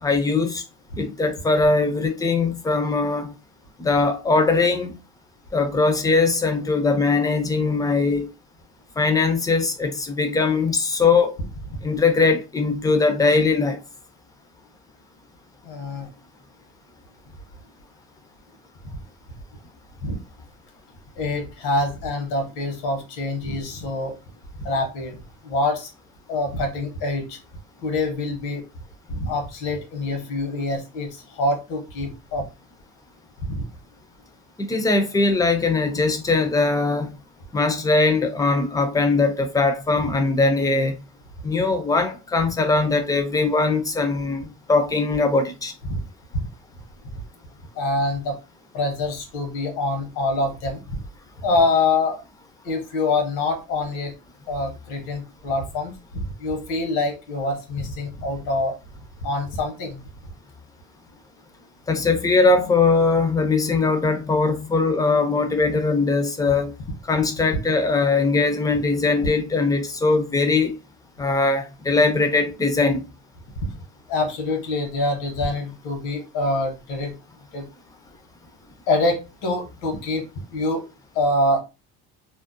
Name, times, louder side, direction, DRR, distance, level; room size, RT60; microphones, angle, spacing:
voice 1, 0.0-0.6 1.0-3.3 3.8-5.0 5.5-8.3 9.0-11.3 11.8-13.8 34.6-37.2 37.5-40.9 41.4-45.7 61.9-66.7 67.1-70.7 71.2-73.0, left 3 dB, 10° left, 0.4 m, -21 dB
voice 2, 15.6-16.1 20.0-20.2 21.2-24.1 24.6-25.2 25.4-25.9 26.3-27.4 27.8-28.6 29.1-32.4 33.4-33.6 45.9-46.0 46.3-46.5 47.8-48.4 48.7-51.0 51.4-52.2 52.6-54.1 54.5-58.7 59.2-60.0 73.6-73.7 74.1-77.1 77.5-77.7 78.9-80.2 80.5-80.8 81.1-81.6, left 2 dB, 80° left, 1.0 m, -25 dB
2.5 x 2.0 x 2.5 m
cardioid pair, 110°, 38 cm